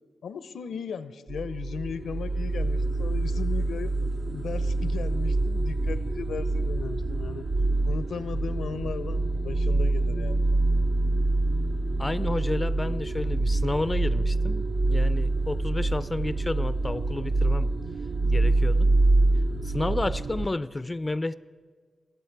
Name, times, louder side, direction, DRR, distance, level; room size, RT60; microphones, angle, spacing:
voice 1, 0.2-4.0 4.3-7.5 7.8-10.4 18.3-18.4, left 6 dB, 85° left, 14 dB, 0.5 m, -36 dB
sound 1, 1.3-20.5, right 2 dB, 65° right, 0.7 m, -26 dB
voice 2, 12.0-17.7 18.3-18.9 19.6-21.3, left 2 dB, 25° left, 15 dB, 0.3 m, -31 dB
22.5 x 8.0 x 4.6 m, 1.6 s
cardioid pair, 80°, 0 cm